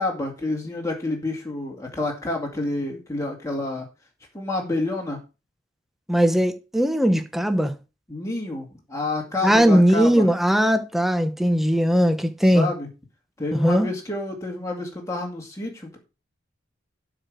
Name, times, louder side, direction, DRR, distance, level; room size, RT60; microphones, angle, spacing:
voice 1, 0.0-3.9 4.3-5.2 8.1-10.3 12.4-12.9 13.4-16.0, left 2 dB, 15° left, 2.2 m, -29 dB
voice 2, 6.1-7.7 9.4-12.7 13.5-13.9, equal, ahead, 1.0 m, -19 dB
12.0 x 5.0 x 6.3 m
head